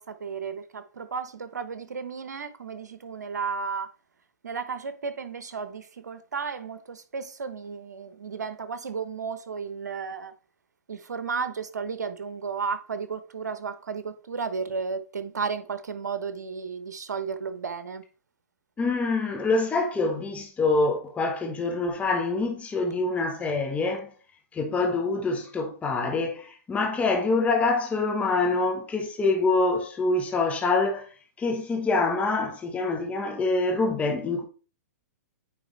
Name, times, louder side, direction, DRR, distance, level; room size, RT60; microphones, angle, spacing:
voice 1, 0.0-3.9 4.4-10.3 10.9-18.0, right 5 dB, 85° right, 0.9 m, -33 dB
voice 2, 18.8-24.1 24.5-31.1 31.4-34.4, left 3 dB, 15° left, 1.2 m, -25 dB
9.2 x 3.5 x 3.2 m
hypercardioid pair, 125°, 9 cm